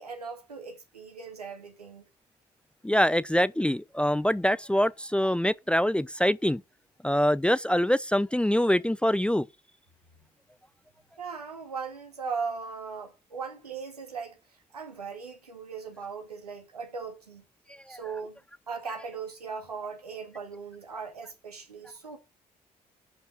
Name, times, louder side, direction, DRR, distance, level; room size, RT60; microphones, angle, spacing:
voice 1, 0.0-2.0 11.2-14.4 14.7-17.4 17.9-18.4 18.7-22.2, right 5 dB, 85° right, 2.1 m, -38 dB
voice 2, 2.8-6.6 7.0-9.5 17.7-18.0, equal, 5° left, 0.6 m, -24 dB
11.5 x 5.7 x 5.4 m
figure-of-eight pair, 45°, 19 cm